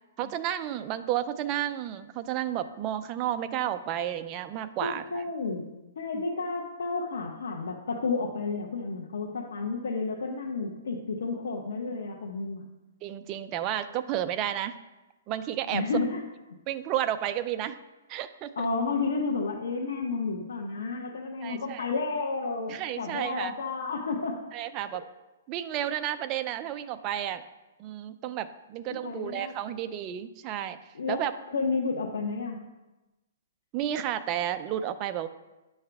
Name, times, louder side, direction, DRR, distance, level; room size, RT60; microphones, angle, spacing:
voice 1, 0.2-5.2 6.1-6.2 13.0-14.8 15.3-15.9 16.7-17.8 18.1-18.7 21.4-21.9 22.7-23.6 24.5-25.0 25.5-27.4 27.8-30.8 31.1-31.3 33.7-35.3, right 11 dB, 25° right, 10 dB, 0.4 m, -32 dB
voice 2, 4.8-5.6 6.0-12.7 15.7-16.2 18.6-24.4 29.0-29.8 30.9-31.2 31.5-32.6, left 4 dB, 90° left, -2 dB, 1.0 m, -31 dB
10.0 x 5.5 x 3.5 m, 1.1 s
hypercardioid pair, 160°, 0 cm